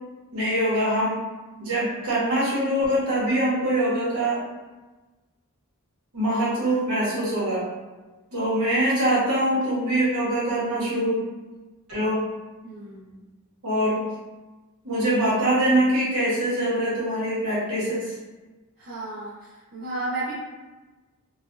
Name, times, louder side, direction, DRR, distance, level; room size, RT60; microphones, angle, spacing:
voice 1, 0.3-1.2 1.6-4.4 6.1-7.6 8.3-11.2 11.9-12.2 13.6-14.0 14.8-18.1, right 1 dB, 70° right, -8 dB, 1.4 m, -23 dB
voice 2, 12.6-13.2 18.8-19.3 19.7-20.4, right 2 dB, 45° right, -9 dB, 0.6 m, -33 dB
3.1 x 2.4 x 2.6 m, 1.2 s
head